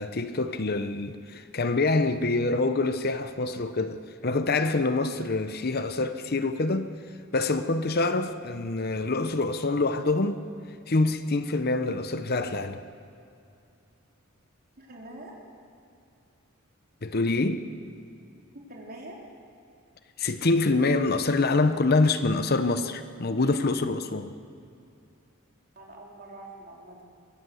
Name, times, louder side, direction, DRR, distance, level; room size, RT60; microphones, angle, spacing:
voice 1, 0.0-6.9 7.3-10.4 10.9-12.8 17.0-17.7 20.2-24.3, left 3 dB, 45° left, 0.8 m, -26 dB
voice 2, 14.8-15.4 18.2-18.3 18.5-19.2 25.8-27.0, right 1 dB, 45° right, 4.0 m, -44 dB
22.5 x 16.0 x 7.9 m
head